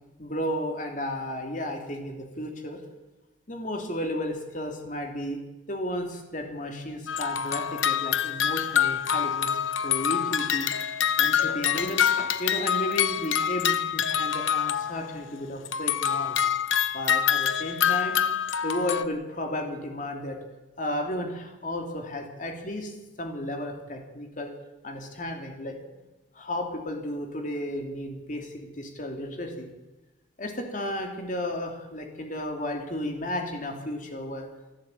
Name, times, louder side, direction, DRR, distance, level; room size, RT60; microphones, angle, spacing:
voice 1, 0.2-2.8 3.5-5.4 5.7-9.6 9.8-10.7 11.2-16.4 16.9-18.2 18.6-20.4 20.8-22.9 23.2-24.5 24.8-25.8 26.3-29.7 30.4-34.5, left 1 dB, 45° left, 3 dB, 3.2 m, -33 dB
sound 1, 7.1-15.3 15.6-19.0, left 9 dB, 85° left, 1.1 m, -26 dB
27.0 x 12.0 x 8.6 m, 1.1 s
head